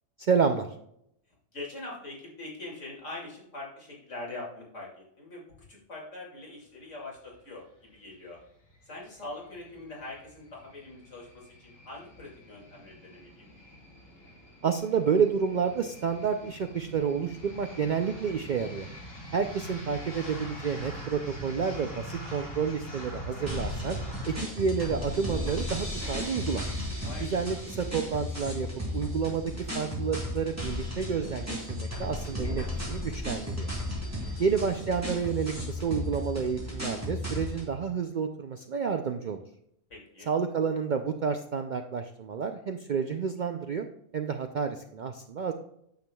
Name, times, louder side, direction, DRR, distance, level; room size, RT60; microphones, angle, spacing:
voice 1, 0.2-0.7 14.6-18.9 19.3-24.0 24.3-26.6 27.2-28.7 28.9-33.7 34.4-39.4 40.3-43.9 44.1-45.5, right 6 dB, 70° right, 6 dB, 0.4 m, -30 dB
voice 2, 1.5-5.4 5.7-8.4 8.8-13.5 27.0-27.4 34.2-34.5 39.9-40.3, left 2 dB, 65° left, -4 dB, 2.6 m, -43 dB
sound 1, 8.6-24.4, equal, 85° left, 3.3 m, -43 dB
sound 2, 23.5-37.7, left 1 dB, 10° right, 2.6 m, -35 dB
sound 3, 24.2-30.4, left 1 dB, 25° left, 3.0 m, -46 dB
9.1 x 7.0 x 2.2 m, 0.73 s
omnidirectional pair, 1.4 m